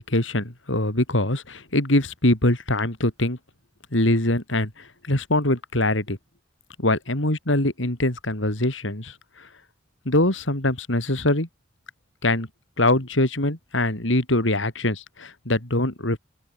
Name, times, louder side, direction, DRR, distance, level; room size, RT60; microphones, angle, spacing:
voice 1, 0.0-3.4 3.9-6.2 6.8-9.5 10.1-11.5 12.2-12.5 12.8-16.2, left 1 dB, 85° left, 4.0 m, -23 dB
open air
head